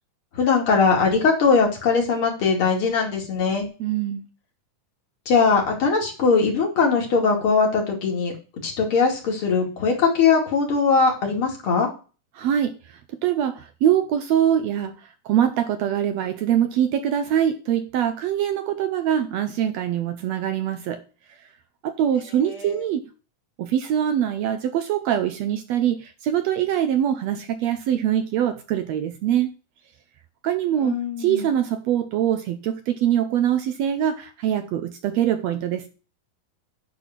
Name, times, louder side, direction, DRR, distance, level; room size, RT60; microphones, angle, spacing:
voice 1, 0.3-3.7 5.3-8.3 8.6-11.9 22.4-22.8 30.8-31.4, left 5 dB, 45° left, 3.1 m, -20 dB
voice 2, 3.8-4.2 12.3-21.0 21.8-23.0 23.6-29.5 30.4-35.9, right 10 dB, 80° right, 1.6 m, -23 dB
9.9 x 4.2 x 7.3 m
omnidirectional pair, 3.6 m